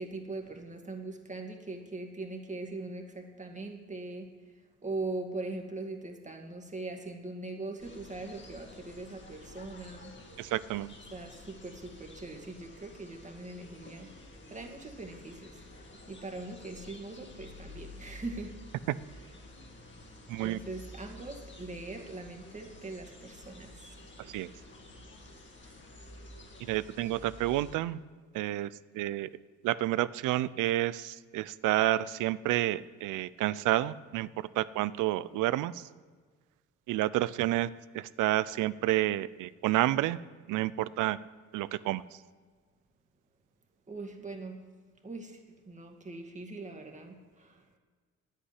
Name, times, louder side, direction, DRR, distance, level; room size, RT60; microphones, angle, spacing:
voice 1, 0.0-4.3 4.8-10.2 11.1-15.5 15.8-18.6 20.4-24.0 43.9-44.7 45.0-45.4 45.7-47.6, right 2 dB, 25° right, 3 dB, 2.1 m, -41 dB
sound 1, 7.8-27.8, left 2 dB, 40° left, 2.3 m, -51 dB
voice 2, 10.4-10.9 20.3-20.6 24.3-24.5 26.6-28.0 28.3-28.7 28.9-29.3 29.6-34.3 34.6-35.8 36.9-37.7 37.9-40.2 40.5-41.2 41.5-42.0, right 15 dB, 85° right, 18 dB, 0.5 m, -29 dB
9.9 x 8.5 x 9.7 m, 1.5 s
cardioid pair, 90°, 30 cm